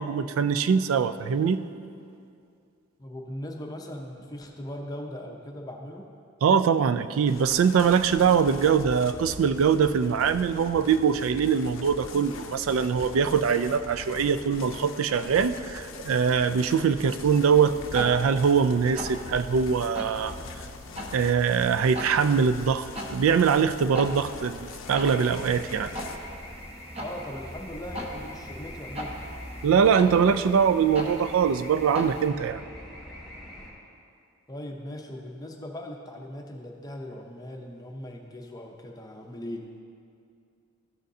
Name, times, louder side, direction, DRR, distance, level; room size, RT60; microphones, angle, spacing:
voice 1, 0.0-1.6 6.4-20.3 21.1-25.9 29.6-32.6, right 6 dB, 80° right, 12 dB, 0.3 m, -23 dB
voice 2, 3.0-6.0 27.0-29.2 34.5-39.6, left 1 dB, 20° left, 1 dB, 0.6 m, -39 dB
sound 1, 7.3-26.2, left 4 dB, 75° left, 0.5 m, -42 dB
sound 2, 17.4-32.3, equal, 30° right, 0.9 m, -41 dB
sound 3, 24.8-33.7, left 1 dB, ahead, 1.7 m, -43 dB
14.0 x 6.4 x 2.7 m, 2.4 s
head